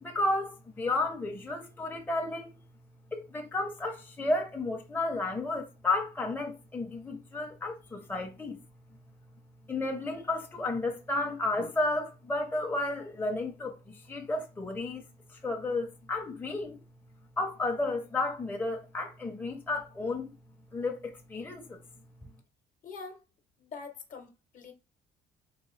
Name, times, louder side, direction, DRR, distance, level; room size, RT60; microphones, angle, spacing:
voice 1, 0.0-2.5 3.1-8.6 9.7-13.8 14.1-15.0 15.4-16.8 17.4-20.3 20.7-21.8, left 2 dB, 10° left, 0.5 m, -32 dB
voice 2, 22.8-23.2 23.6-24.7, left 4 dB, 50° left, 0.8 m, -44 dB
3.8 x 2.5 x 3.1 m
cardioid pair, 110°, 17 cm